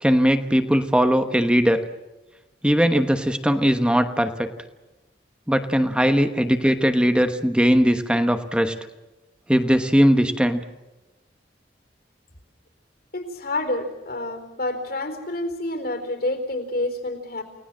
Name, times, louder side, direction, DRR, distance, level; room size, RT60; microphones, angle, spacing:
voice 1, 0.0-1.8 2.6-4.5 5.5-8.8 9.5-10.6, equal, 5° right, 8 dB, 1.1 m, -19 dB
voice 2, 13.1-17.4, left 2 dB, 60° left, 6 dB, 4.3 m, -28 dB
29.5 x 18.5 x 7.6 m, 1.1 s
head